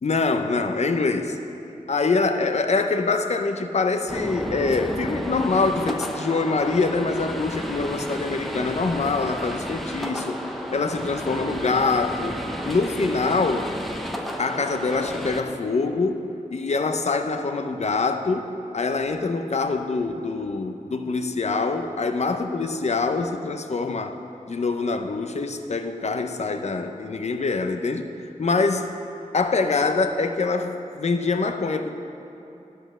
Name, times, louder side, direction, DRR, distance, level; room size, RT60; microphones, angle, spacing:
voice 1, 0.0-1.4 1.9-10.4 10.7-13.7 14.4-16.2 16.5-24.2 24.5-28.1 28.4-28.9 29.3-31.9, left 3 dB, 55° left, 7 dB, 0.7 m, -24 dB
sound 1, 4.1-15.4, equal, ahead, 0.8 m, -32 dB
12.0 x 5.5 x 6.1 m, 2.9 s
wide cardioid pair, 70°, 14 cm